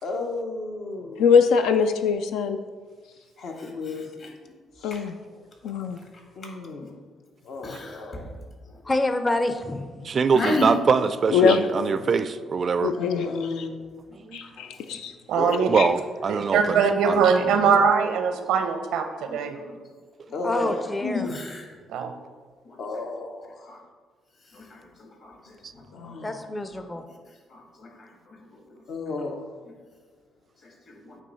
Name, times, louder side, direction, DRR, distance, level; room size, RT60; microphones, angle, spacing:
voice 1, 0.0-1.3 3.4-4.1 4.8-5.0 6.4-7.0 7.4-8.3 12.9-13.8 15.4-15.8 20.3-20.9 22.8-23.8 25.4-25.5 25.9-26.4 28.9-29.5, left 3 dB, 70° left, 3 dB, 0.9 m, -33 dB
voice 2, 1.2-2.6 4.8-5.1 5.6-6.0 11.3-11.6 12.8-13.3 14.3-15.1 15.8-15.9, left 6 dB, 90° left, 8 dB, 0.3 m, -21 dB
voice 3, 7.6-8.3 10.3-10.7 14.5-14.7 16.3-16.4 19.3-19.8 21.0-21.6 22.6-22.8 23.7-23.8 24.5-24.8 25.2-25.3 27.5-27.9 28.3-28.4 30.9-31.2, left 2 dB, 55° left, 0 dB, 1.8 m, -31 dB
voice 4, 8.8-9.9 20.4-21.3 26.2-27.0, left 2 dB, 20° left, 8 dB, 0.5 m, -27 dB
voice 5, 10.0-12.9 14.3-14.4 15.7-16.8 17.0-17.7, right 5 dB, 45° right, 13 dB, 0.3 m, -23 dB
voice 6, 15.3-15.7 16.3-19.5 21.9-22.1, right 6 dB, 90° right, 7 dB, 0.6 m, -22 dB
8.3 x 3.1 x 5.4 m, 1.5 s
cardioid pair, 90°, 0 cm